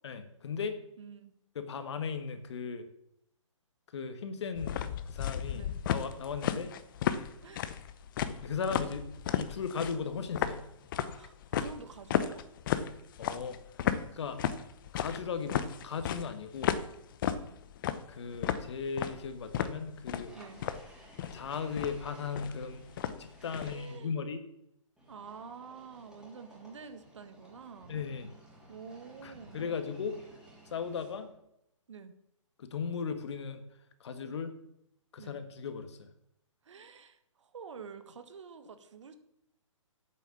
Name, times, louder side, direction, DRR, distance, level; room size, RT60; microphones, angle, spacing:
voice 1, 0.0-0.8 1.5-2.9 3.9-4.8 5.0-6.7 8.4-10.6 13.2-13.6 14.1-14.4 14.9-16.7 18.1-20.3 21.3-22.9 23.2-24.4 27.9-28.3 29.2-30.2 30.7-31.3 32.6-33.6 34.0-34.5 35.1-36.0, left 6 dB, 55° left, 9 dB, 1.5 m, -37 dB
voice 2, 1.0-1.3 5.5-5.7 6.6-6.7 7.4-7.6 11.1-12.5 17.2-17.5 20.3-20.7 23.5-24.1 25.1-28.0 28.7-29.8 31.9-32.1 35.2-35.4 36.6-39.2, right 5 dB, 65° right, 9 dB, 1.5 m, -48 dB
sound 1, 4.5-23.8, left 9 dB, 40° left, 0.8 m, -34 dB
sound 2, 20.3-24.0 25.0-31.4, right 1 dB, 5° right, 3.3 m, -56 dB
8.3 x 7.6 x 7.1 m, 0.79 s
figure-of-eight pair, 135°, 17 cm